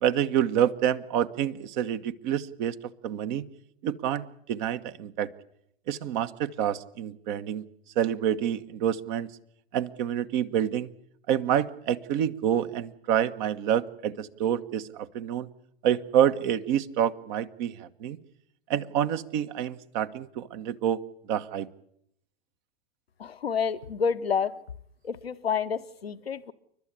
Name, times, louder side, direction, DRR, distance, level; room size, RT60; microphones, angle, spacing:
voice 1, 0.0-2.8 3.0-3.4 3.8-5.3 5.9-7.6 7.9-9.3 9.7-10.9 11.3-15.5 15.8-18.2 18.7-21.0 21.3-21.7, right 10 dB, 50° right, 11 dB, 1.3 m, -27 dB
voice 2, 23.2-24.5 25.0-26.5, left 6 dB, 85° left, 11 dB, 0.9 m, -29 dB
29.0 x 12.0 x 8.3 m, 0.72 s
hypercardioid pair, 95°, 30 cm